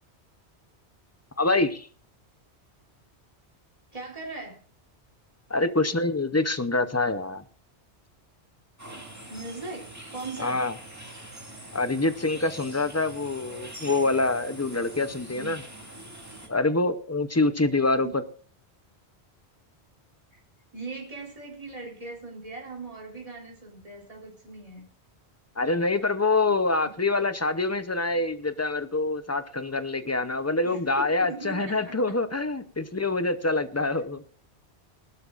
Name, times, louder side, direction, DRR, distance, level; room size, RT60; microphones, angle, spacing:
voice 1, 1.4-1.9 5.5-7.4 10.4-10.7 11.7-15.6 16.5-18.1 25.6-34.2, left 2 dB, 20° left, 12 dB, 0.5 m, -25 dB
voice 2, 3.9-4.6 9.3-10.6 17.9-18.2 20.3-20.4 20.7-24.9 26.0-26.1 30.6-31.9, right 3 dB, 30° right, -2 dB, 3.5 m, -39 dB
sound 1, 8.8-16.5, right 1 dB, 15° right, 2.2 m, -43 dB
21.0 x 12.0 x 2.4 m, 0.42 s
omnidirectional pair, 1.1 m